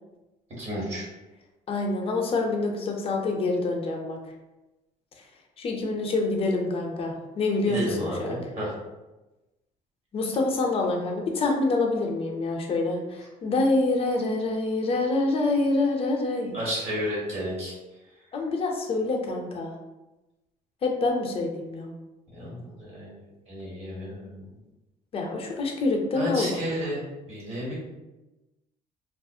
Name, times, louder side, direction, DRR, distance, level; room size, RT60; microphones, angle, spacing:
voice 1, 0.6-1.1 7.6-8.7 16.5-17.7 22.3-23.1 23.5-24.4 26.1-27.0 27.3-27.7, equal, 45° right, -6 dB, 1.3 m, -32 dB
voice 2, 1.7-4.2 5.2-5.3 5.6-8.4 10.1-16.6 18.3-19.7 20.8-21.9 25.1-26.6, left 2 dB, 40° left, 1 dB, 0.6 m, -26 dB
2.4 x 2.1 x 2.6 m, 1.0 s
cardioid pair, 95°, 16 cm